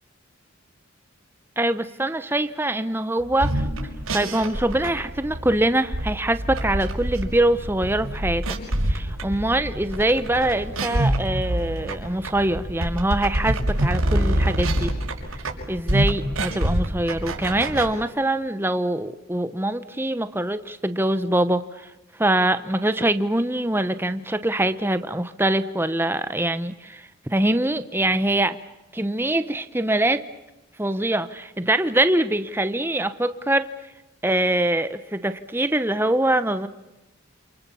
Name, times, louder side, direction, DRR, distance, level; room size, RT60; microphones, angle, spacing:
voice 1, 1.6-3.7 4.1-8.6 8.9-14.9 15.7-28.6 28.9-30.3 30.8-33.7 34.2-36.7, right 1 dB, 10° right, 11 dB, 0.9 m, -23 dB
sound 1, 3.3-17.9, right 1 dB, 90° right, 5.7 m, -26 dB
28.5 x 28.5 x 7.1 m, 0.99 s
head